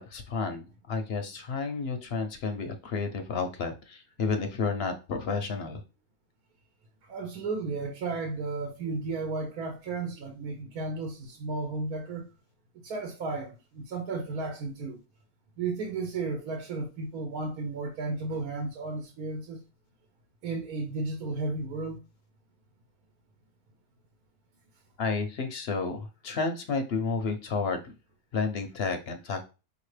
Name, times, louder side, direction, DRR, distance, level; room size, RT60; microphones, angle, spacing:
voice 1, 0.0-5.8 25.0-27.8 28.3-29.4, left 4 dB, 60° left, 0.7 m, -31 dB
voice 2, 7.1-12.3 12.8-15.0 15.6-19.6 20.4-22.0, right 3 dB, 80° right, 1.3 m, -33 dB
5.1 x 2.9 x 3.2 m
omnidirectional pair, 1.5 m